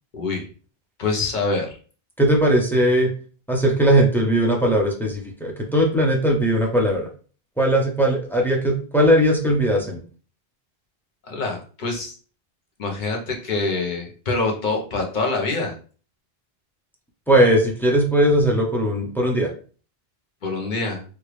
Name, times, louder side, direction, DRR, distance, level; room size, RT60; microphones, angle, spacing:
voice 1, 0.1-0.5 1.0-1.8 11.2-12.1 12.8-15.8 20.4-21.0, left 3 dB, 50° left, 0 dB, 1.0 m, -25 dB
voice 2, 2.2-3.1 3.5-7.1 7.6-10.0 17.3-19.5, right 1 dB, ahead, 0 dB, 0.6 m, -19 dB
3.2 x 2.4 x 3.2 m, 0.39 s
omnidirectional pair, 1.0 m